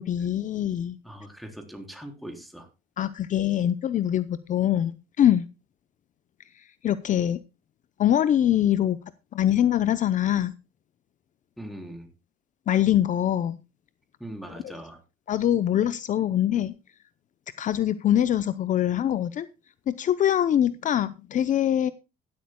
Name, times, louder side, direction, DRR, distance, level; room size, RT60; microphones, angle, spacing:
voice 1, 0.0-1.0 3.0-4.9 5.2-5.5 6.8-7.4 8.0-9.0 9.3-10.5 12.7-13.6 14.6-14.7 15.3-16.7 17.6-19.5 19.9-21.9, left 11 dB, 50° left, 14 dB, 0.7 m, -23 dB
voice 2, 1.0-2.7 11.6-12.1 14.2-15.0, right 1 dB, ahead, 4 dB, 3.7 m, -40 dB
16.0 x 12.5 x 2.2 m, 0.27 s
cardioid pair, 110°, 17 cm